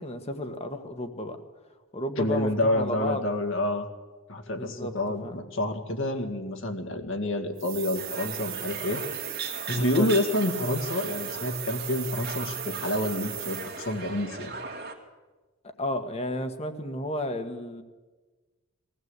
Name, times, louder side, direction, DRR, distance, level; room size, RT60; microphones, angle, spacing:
voice 1, 0.0-1.4 1.9-3.2 4.5-4.9 5.2-5.4 9.7-10.1 15.8-17.8, left 1 dB, 30° left, 7 dB, 1.4 m, -32 dB
voice 2, 2.2-3.9 4.3-9.0 9.7-14.5, left 1 dB, 60° left, 5 dB, 2.1 m, -28 dB
sound 1, 7.6-14.0, right 15 dB, 75° right, 2.1 m, -37 dB
sound 2, 7.9-14.9, right 3 dB, 45° right, 2.4 m, -39 dB
21.0 x 15.5 x 8.1 m, 1.3 s
head